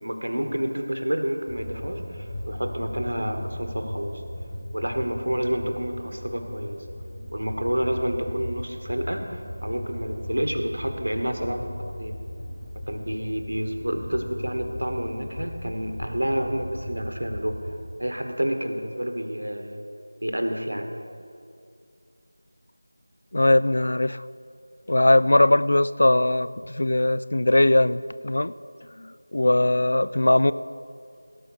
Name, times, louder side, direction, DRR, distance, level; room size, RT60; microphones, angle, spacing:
voice 1, 0.0-4.2 4.7-6.8 7.3-11.7 12.0-12.2 12.9-17.6 18.0-19.8 20.2-20.9, equal, 75° right, 5 dB, 1.4 m, -29 dB
sound 1, 1.5-17.8, left 1 dB, 5° left, 1.5 m, -37 dB
voice 2, 23.3-24.2 24.9-28.5 29.0-30.5, left 1 dB, 60° left, 16 dB, 0.3 m, -20 dB
17.0 x 5.7 x 6.4 m, 2.5 s
figure-of-eight pair, 170°, 0 cm